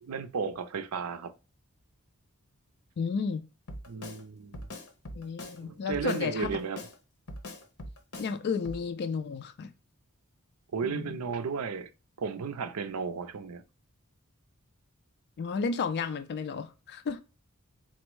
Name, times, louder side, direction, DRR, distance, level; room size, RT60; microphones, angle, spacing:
voice 1, 0.0-1.3 3.9-4.7 5.6-6.8 10.7-11.9 12.2-13.6, right 5 dB, 85° right, 0.5 m, -34 dB
voice 2, 3.0-3.4 5.1-6.6 8.2-9.7 10.8-11.2 15.4-17.2, left 5 dB, 50° left, 0.3 m, -32 dB
Drum kit, 3.7-4.2 4.5-5.6 5.9-7.0 7.3-8.3 8.6-8.8, left 1 dB, 75° left, 0.9 m, -42 dB
4.3 x 2.0 x 4.5 m
head